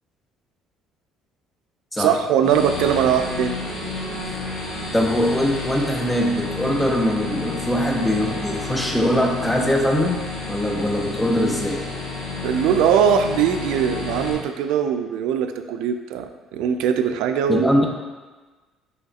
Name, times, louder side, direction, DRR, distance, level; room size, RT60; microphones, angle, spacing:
voice 1, 2.0-3.6 12.4-17.7, right 8 dB, 80° right, 8 dB, 0.3 m, -21 dB
sound 1, 2.4-14.3, left 3 dB, 55° left, 1.3 m, -31 dB
voice 2, 4.9-10.2 10.5-11.8 17.5-17.9, equal, 10° left, 2 dB, 0.6 m, -21 dB
5.6 x 3.1 x 2.8 m, 1.3 s
cardioid pair, 95°, 0 cm